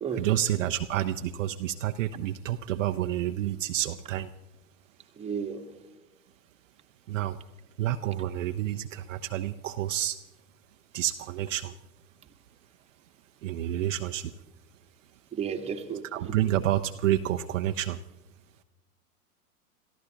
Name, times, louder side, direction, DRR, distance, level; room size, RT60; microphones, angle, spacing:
voice 1, 0.1-4.3 7.1-7.4 7.8-10.2 10.9-11.7 13.4-14.3 16.0-18.0, right 12 dB, 55° right, 7 dB, 0.7 m, -29 dB
voice 2, 5.2-5.6 15.3-16.3, right 7 dB, 15° right, 3 dB, 1.3 m, -33 dB
28.5 x 14.5 x 2.8 m, 1.1 s
figure-of-eight pair, 105°, 46 cm